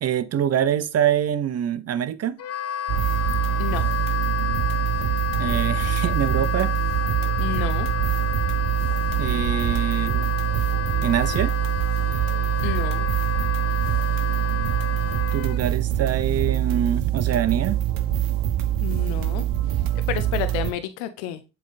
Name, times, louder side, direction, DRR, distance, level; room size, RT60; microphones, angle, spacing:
voice 1, 0.0-2.4 5.4-6.7 9.2-10.3 11.0-11.5 15.3-17.8, right 9 dB, 40° right, 0.7 m, -25 dB
Wind instrument woodwind instrument, 2.4-15.6, left 10 dB, 40° left, 0.8 m, -30 dB
sound 1, 2.9-20.7, right 12 dB, 60° right, 1.0 m, -24 dB
voice 2, 7.4-7.9 12.6-13.1 18.8-19.4 19.9-21.4, left 11 dB, 75° left, 0.7 m, -30 dB
7.5 x 3.4 x 4.0 m
hypercardioid pair, 60°, 38 cm